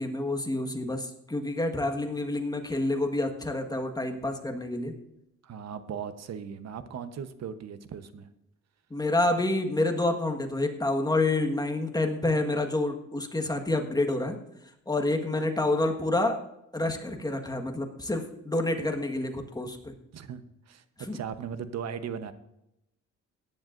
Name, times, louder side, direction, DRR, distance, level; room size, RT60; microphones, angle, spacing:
voice 1, 0.0-4.9 8.9-14.4 14.9-16.4 16.7-19.9 21.1-21.2, left 2 dB, 15° left, 4 dB, 1.5 m, -28 dB
voice 2, 5.4-8.3 20.1-22.3, right 7 dB, 60° right, 11 dB, 1.0 m, -38 dB
17.0 x 10.5 x 2.6 m, 0.83 s
cardioid pair, 90°, 30 cm